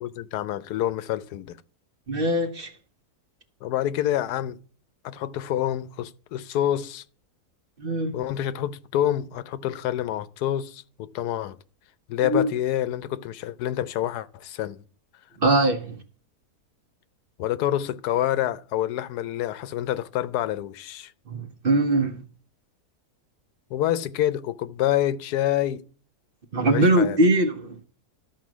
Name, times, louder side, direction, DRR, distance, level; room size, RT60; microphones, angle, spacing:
voice 1, 0.0-1.6 3.6-4.6 5.0-7.0 8.1-11.6 12.1-14.8 17.4-21.1 23.7-25.8 26.7-27.2, left 12 dB, 85° left, 1.2 m, -27 dB
voice 2, 2.1-2.7 7.8-8.2 12.2-12.5 15.4-16.0 21.3-22.2 26.5-27.8, right 1 dB, 45° right, 0.9 m, -22 dB
13.0 x 4.5 x 6.0 m
omnidirectional pair, 1.7 m